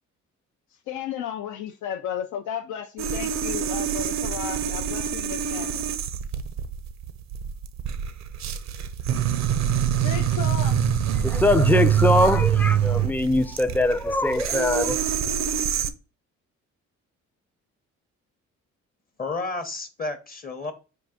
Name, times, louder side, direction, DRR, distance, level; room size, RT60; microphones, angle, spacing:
voice 1, 0.7-5.9 10.0-10.8, left 9 dB, 85° left, 0.5 m, -34 dB
sound 1, 3.0-15.9, right 9 dB, 65° right, 0.5 m, -25 dB
voice 2, 11.2-15.0, left 2 dB, 5° left, 0.3 m, -22 dB
voice 3, 19.2-20.7, left 3 dB, 30° left, 0.7 m, -31 dB
4.7 x 2.5 x 3.6 m
cardioid pair, 90°, 30 cm